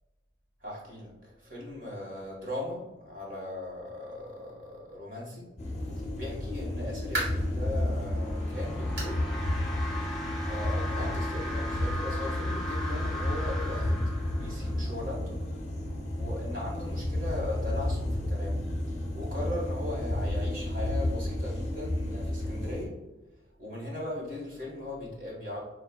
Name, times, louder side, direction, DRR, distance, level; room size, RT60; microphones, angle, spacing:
voice 1, 0.6-1.1 1.4-5.5 6.1-9.2 10.5-14.0 14.3-15.4 16.1-18.6 19.1-22.9 23.6-25.6, left 1 dB, 45° right, -4 dB, 1.4 m, -38 dB
sound 1, 5.6-22.9, left 1 dB, 35° left, 0.6 m, -31 dB
sound 2, 7.1-7.6 8.1-8.2 9.0-9.2 9.6-9.7 10.2-10.3 11.3-11.4, right 1 dB, 60° right, 1.4 m, -35 dB
sound 3, 7.8-14.9, left 1 dB, ahead, 1.2 m, -39 dB
6.4 x 2.4 x 2.2 m, 1.1 s
head